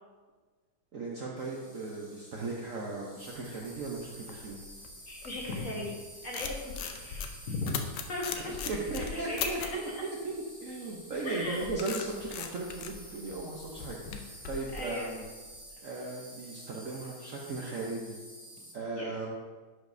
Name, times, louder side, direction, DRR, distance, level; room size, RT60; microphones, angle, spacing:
voice 1, 0.9-4.6 8.5-9.8 10.2-10.3 10.6-14.0 14.2-15.3 15.8-18.2 18.7-19.3, right 3 dB, 60° right, -3 dB, 0.9 m, -37 dB
Insect, 1.4-18.7, right 1 dB, 5° left, 2.0 m, -50 dB
sound 1, 3.4-5.8 6.1-9.8 11.1-15.6, left 7 dB, 70° left, 1.1 m, -40 dB
voice 2, 5.1-6.0 6.2-7.8 8.1-8.4 9.0-9.5 11.2-11.6 14.7-15.1 18.9-19.1, left 2 dB, 45° left, -4 dB, 1.6 m, -37 dB
11.5 x 5.1 x 2.6 m, 1.4 s
omnidirectional pair, 2.2 m